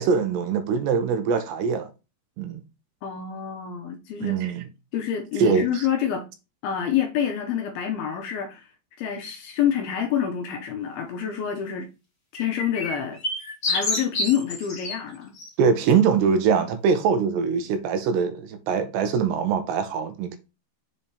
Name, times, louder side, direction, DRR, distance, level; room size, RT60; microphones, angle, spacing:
voice 1, 0.0-1.9 2.4-2.6 4.2-4.6 5.4-5.8 15.6-20.4, right 6 dB, 80° right, 2.8 m, -23 dB
voice 2, 3.0-4.4 4.9-6.3 6.6-8.7 9.0-11.9 12.3-13.2 13.7-15.4, left 9 dB, 80° left, 2.4 m, -27 dB
sound 1, 12.4-14.9 15.3-15.5, left 2 dB, 55° left, 1.0 m, -28 dB
7.1 x 3.3 x 4.2 m
omnidirectional pair, 5.0 m